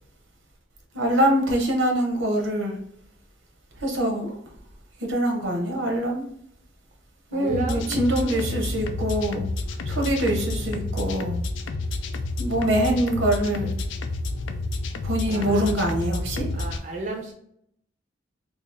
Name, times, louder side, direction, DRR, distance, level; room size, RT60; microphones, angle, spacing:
voice 1, 0.9-2.8 3.8-4.4 5.0-6.3 7.3-9.5 9.9-11.4 12.4-13.7 15.0-16.5, right 1 dB, 80° right, 2 dB, 0.9 m, -24 dB
voice 2, 7.3-8.6 9.9-10.1 15.3-15.8 16.5-17.3, right 3 dB, 40° right, 0 dB, 0.5 m, -34 dB
sound 1, 7.5-16.8, left 2 dB, 70° left, 0.4 m, -30 dB
2.9 x 2.4 x 3.7 m, 0.69 s
head